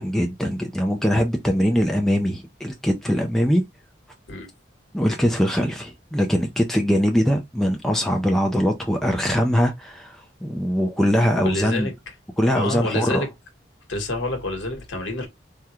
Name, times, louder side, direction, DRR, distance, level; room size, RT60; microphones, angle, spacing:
voice 1, 0.0-3.6 4.9-11.9 12.4-13.2, equal, ahead, 0.4 m, -22 dB
voice 2, 11.4-11.9 12.5-13.3 13.9-15.3, left 2 dB, 70° left, 1.1 m, -27 dB
3.5 x 2.2 x 2.9 m
head